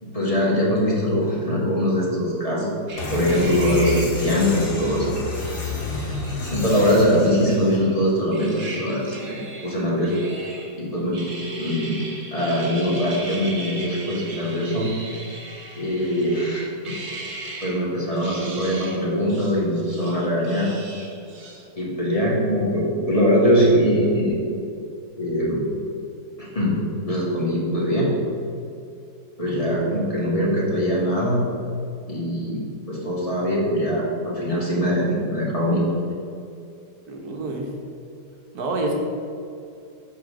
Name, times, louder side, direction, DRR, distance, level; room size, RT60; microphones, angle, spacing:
voice 1, 0.0-2.8 3.1-5.1 6.5-10.2 10.8-11.2 11.6-12.0 12.3-14.9 15.8-16.9 17.6-20.7 21.8-24.4 25.2-25.6 26.4-26.8 27.1-28.1 29.4-31.4 32.1-35.8, equal, 20° left, -5 dB, 1.9 m, -22 dB
sound 1, 2.9-8.0 8.3-10.8 11.1-17.8 18.1-19.0 19.3-21.7, right 2 dB, 55° right, 1.5 m, -38 dB
sound 2, 3.0-7.8, left 3 dB, 85° left, 1.8 m, -29 dB
voice 2, 29.5-29.8 37.1-37.7 38.5-38.9, right 2 dB, 70° right, 1 dB, 1.7 m, -29 dB
7.9 x 4.1 x 6.4 m, 2.5 s
omnidirectional pair, 1.7 m